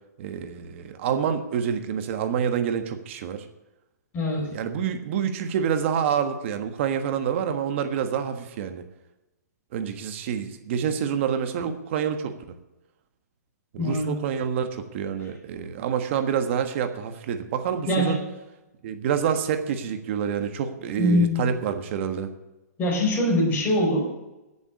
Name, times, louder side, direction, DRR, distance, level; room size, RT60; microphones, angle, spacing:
voice 1, 0.2-3.4 4.4-8.8 9.7-12.3 13.7-18.2 18.8-22.3, right 8 dB, 45° right, 7 dB, 1.4 m, -27 dB
voice 2, 4.1-4.5 13.8-14.2 17.9-18.2 21.0-21.4 22.8-24.1, left 1 dB, 20° left, -4 dB, 4.8 m, -23 dB
13.5 x 7.2 x 8.3 m, 0.99 s
hypercardioid pair, 150°, 9 cm